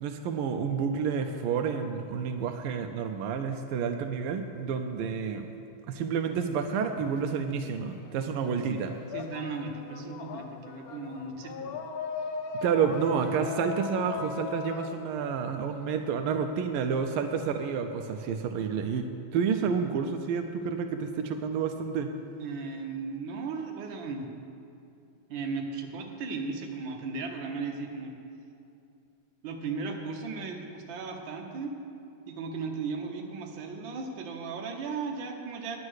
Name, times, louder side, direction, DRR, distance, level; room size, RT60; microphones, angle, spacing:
voice 1, 0.0-5.5 5.9-8.9 12.6-22.1, right 6 dB, 90° right, 6 dB, 1.5 m, -29 dB
sound 1, 6.9-8.1 8.4-16.2, left 6 dB, 80° left, 0.8 m, -39 dB
voice 2, 9.1-11.8 22.4-24.3 25.3-28.2 29.4-31.8 32.3-35.8, right 4 dB, 65° right, 2 dB, 1.7 m, -36 dB
9.7 x 8.6 x 6.3 m, 2.7 s
omnidirectional pair, 2.3 m